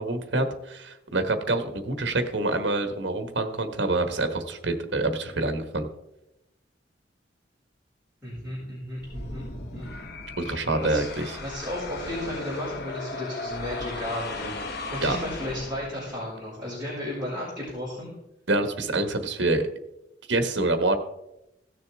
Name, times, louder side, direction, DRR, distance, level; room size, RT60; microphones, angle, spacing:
voice 1, 0.0-5.9 10.4-11.4 15.0-15.2 18.5-19.7 20.3-21.0, right 2 dB, 65° right, 7 dB, 1.3 m, -26 dB
voice 2, 8.2-9.9 10.4-11.0 11.4-18.1, left 1 dB, 10° right, -10 dB, 4.6 m, -34 dB
sound 1, 9.0-16.2, left 2 dB, 60° left, 1.0 m, -37 dB
16.5 x 6.7 x 3.5 m, 0.87 s
head